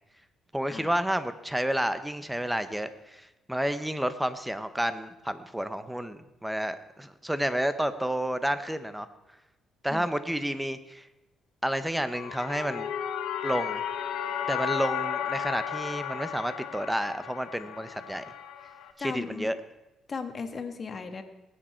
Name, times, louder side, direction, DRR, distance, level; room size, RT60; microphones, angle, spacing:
voice 1, 0.5-9.1 9.8-11.1 11.6-12.9 13.4-13.8 14.5-18.2 19.0-19.6, equal, 5° right, 12 dB, 0.9 m, -30 dB
sound 1, 12.0-18.9, left 8 dB, 85° left, 1.0 m, -34 dB
voice 2, 19.0-19.5 20.1-21.2, left 5 dB, 40° left, 7 dB, 1.5 m, -36 dB
19.5 x 8.9 x 4.5 m, 0.99 s
cardioid pair, 90°, 0 cm